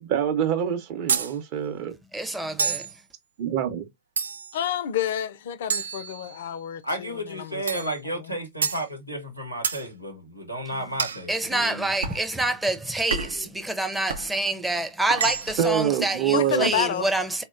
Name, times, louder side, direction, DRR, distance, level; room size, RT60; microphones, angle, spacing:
voice 1, 0.0-1.9 3.4-3.9 13.1-13.5 15.6-16.7, right 9 dB, 45° right, 0.7 m, -26 dB
sound 1, 1.1-1.3 2.6-2.9 4.2-4.6 5.7-6.6 7.7-7.9 8.6-8.8 9.6-9.8 11.0-11.2 12.0-12.2 13.1-13.4 14.1-14.3 15.1-15.7, right 6 dB, 70° right, 0.3 m, -28 dB
voice 2, 2.1-2.8 11.3-17.4, right 2 dB, 5° right, 0.5 m, -27 dB
voice 3, 4.5-8.3 16.3-17.1, left 9 dB, 55° left, 0.3 m, -30 dB
voice 4, 6.8-11.9, right 1 dB, 90° right, 0.8 m, -33 dB
3.8 x 2.1 x 2.3 m
figure-of-eight pair, 90°, 0 cm